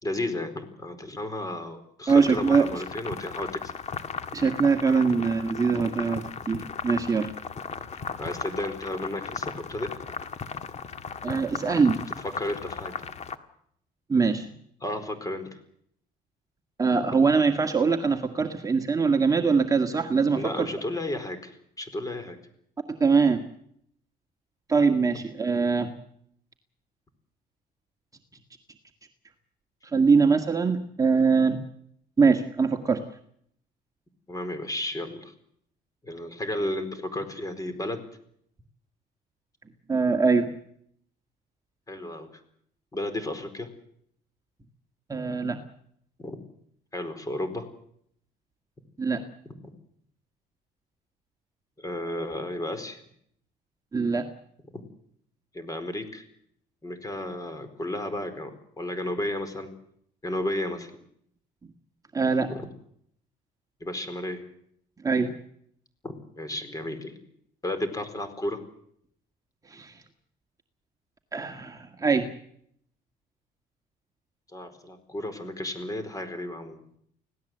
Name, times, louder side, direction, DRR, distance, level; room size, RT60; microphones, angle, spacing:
voice 1, 0.0-3.7 5.1-5.2 8.2-10.1 12.4-12.9 14.8-15.6 17.0-17.2 20.3-22.4 34.3-35.3 36.0-38.0 41.9-42.4 42.9-43.7 46.2-46.4 46.9-47.7 51.8-53.0 54.7-54.8 55.5-56.2 56.8-59.7 60.2-60.9 62.5-62.7 63.8-64.4 66.0-67.2 67.6-68.6 74.5-76.8, left 1 dB, 20° left, 10 dB, 4.5 m, -33 dB
sound 1, 2.1-13.4, left 6 dB, 40° left, 1.8 m, -37 dB
voice 2, 2.1-2.7 4.3-7.3 11.2-12.0 14.1-14.5 16.8-20.7 23.0-23.4 24.7-25.9 29.9-31.6 32.2-33.0 39.9-40.5 45.1-45.6 49.0-49.2 53.9-54.3 62.1-62.5 65.0-65.3 69.7-69.9 71.3-72.3, right 5 dB, 20° right, 4 dB, 1.8 m, -23 dB
25.5 x 17.5 x 7.9 m, 0.68 s
cardioid pair, 110°, 17 cm